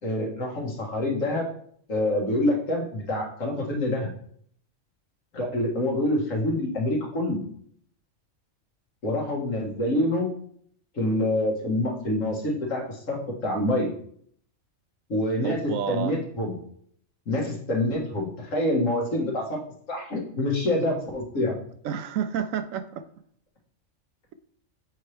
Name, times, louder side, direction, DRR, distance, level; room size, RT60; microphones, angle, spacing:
voice 1, 0.0-1.5 1.9-4.1 5.3-7.4 9.0-10.3 11.0-13.9 15.1-16.5 17.3-19.6 19.9-21.5, left 1 dB, 80° left, -1 dB, 1.9 m, -26 dB
voice 2, 15.4-16.2 21.8-23.1, right 8 dB, 85° right, 11 dB, 1.0 m, -30 dB
6.8 x 4.5 x 3.3 m, 0.62 s
omnidirectional pair, 1.3 m